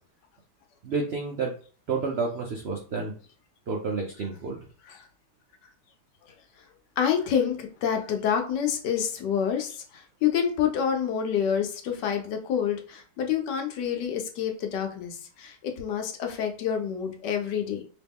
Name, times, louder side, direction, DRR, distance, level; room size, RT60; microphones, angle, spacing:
voice 1, 0.8-1.5 1.9-3.1 3.7-4.6, right 4 dB, 90° right, 0 dB, 0.5 m, -30 dB
voice 2, 7.0-17.8, left 8 dB, 75° left, 4 dB, 1.3 m, -28 dB
3.0 x 2.9 x 3.5 m, 0.41 s
omnidirectional pair, 1.9 m